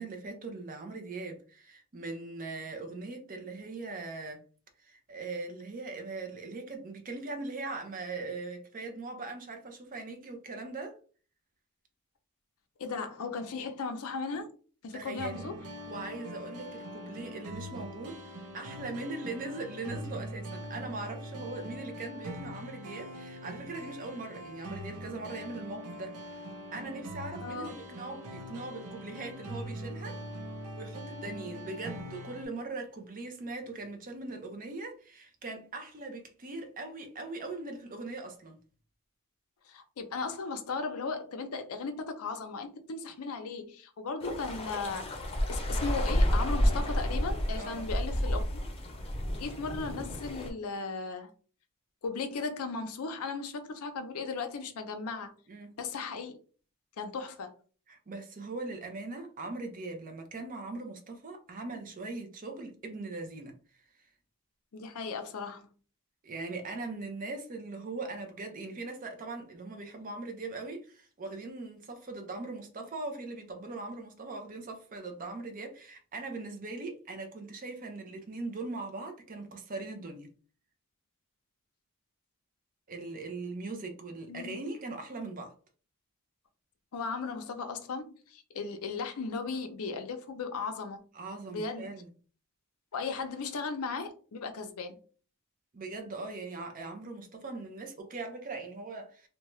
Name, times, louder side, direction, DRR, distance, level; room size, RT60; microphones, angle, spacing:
voice 1, 0.0-4.4 4.8-11.0 14.9-15.5 15.9-26.4 26.7-30.2 30.8-38.6 47.5-47.8 55.5-55.7 57.9-63.5 66.2-80.3 82.9-85.5 91.1-92.1 95.7-99.3, right 3 dB, 40° right, 0.6 m, -40 dB
voice 2, 12.8-14.5 14.8-15.5 27.4-27.7 39.7-45.1 45.5-48.6 49.3-51.3 52.0-55.3 55.8-56.3 57.0-57.5 64.7-65.7 84.3-84.6 86.9-91.0 91.5-91.9 92.9-95.0, left 4 dB, 80° left, 0.5 m, -36 dB
sound 1, 15.2-32.5, equal, 80° right, 0.6 m, -42 dB
sound 2, 44.2-50.5, equal, 25° left, 0.5 m, -30 dB
2.7 x 2.2 x 3.0 m
head